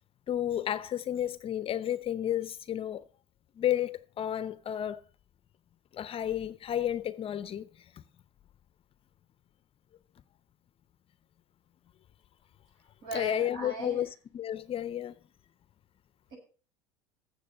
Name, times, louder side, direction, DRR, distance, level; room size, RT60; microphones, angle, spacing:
voice 1, 0.3-3.0 3.6-5.0 5.9-7.7 13.1-15.1, left 11 dB, 35° left, 0.7 m, -32 dB
voice 2, 13.0-14.1 16.3-16.4, right 2 dB, 60° right, 7.0 m, -38 dB
15.5 x 6.7 x 5.4 m
figure-of-eight pair, 70°, 17 cm